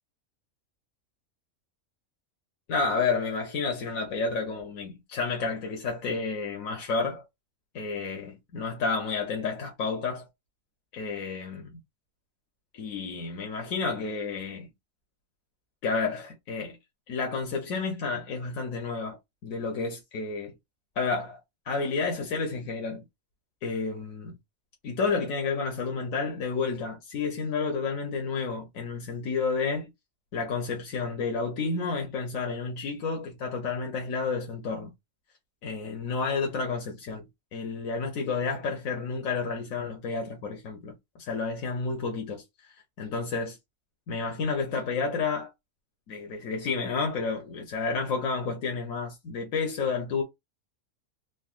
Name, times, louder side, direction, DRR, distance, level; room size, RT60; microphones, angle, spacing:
voice 1, 2.7-7.2 7.7-10.3 10.9-11.8 12.7-14.7 15.8-16.8 17.1-20.5 21.0-21.4 21.7-23.0 23.6-24.3 24.8-29.9 30.3-34.9 35.6-43.6 44.1-45.5 46.1-50.2, left 4 dB, 90° left, 1.3 m, -31 dB
3.9 x 2.1 x 2.4 m
omnidirectional pair, 1.4 m